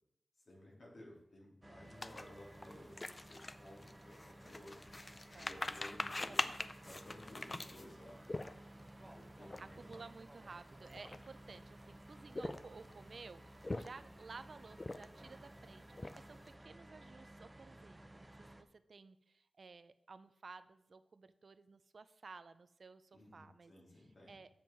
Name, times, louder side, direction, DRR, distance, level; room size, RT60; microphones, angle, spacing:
voice 1, 0.5-4.9 5.4-6.4 6.8-8.2 9.0-9.6 9.9-10.0 23.1-24.4, left 1 dB, 60° left, -2 dB, 2.7 m, -56 dB
sound 1, 1.6-18.6, right 1 dB, 20° right, 0.6 m, -56 dB
sound 2, 2.0-8.9 9.4-9.6 9.9-10.1 10.7-11.6 12.2-12.9 13.5-14.2 14.7-15.3 15.7-16.5, left 2 dB, 30° left, 0.4 m, -43 dB
voice 2, 5.3-7.3 8.8-9.1 9.6-23.7 24.3-24.5, right 4 dB, 60° right, 13 dB, 0.4 m, -55 dB
7.7 x 7.2 x 4.4 m, 0.78 s
wide cardioid pair, 75°, 0 cm